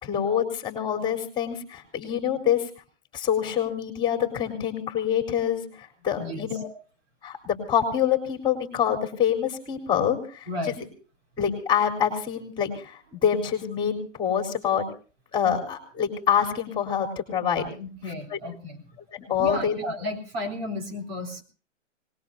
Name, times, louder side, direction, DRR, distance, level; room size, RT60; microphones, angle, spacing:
voice 1, 0.0-2.7 3.1-6.7 7.2-10.5 11.4-14.8 15.3-17.7 18.3-18.4 19.1-19.7, left 8 dB, 10° left, 3 dB, 4.2 m, -26 dB
voice 2, 6.2-6.5 10.5-10.8 17.7-18.8 19.4-21.4, left 2 dB, 50° right, 2 dB, 4.0 m, -32 dB
25.5 x 20.5 x 2.7 m, 0.38 s
hypercardioid pair, 150°, 37 cm